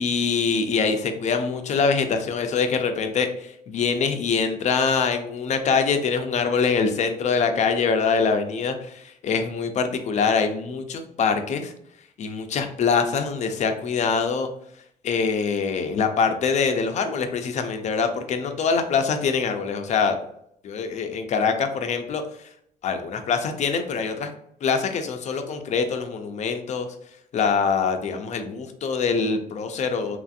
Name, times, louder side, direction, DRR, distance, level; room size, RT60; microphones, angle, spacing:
voice 1, 0.0-11.7 12.2-14.5 15.0-20.2 20.6-22.2 22.8-24.3 24.6-26.9 27.3-30.2, left 5 dB, 45° left, 7 dB, 0.4 m, -24 dB
3.0 x 2.6 x 2.4 m, 0.70 s
cardioid pair, 110°, 17 cm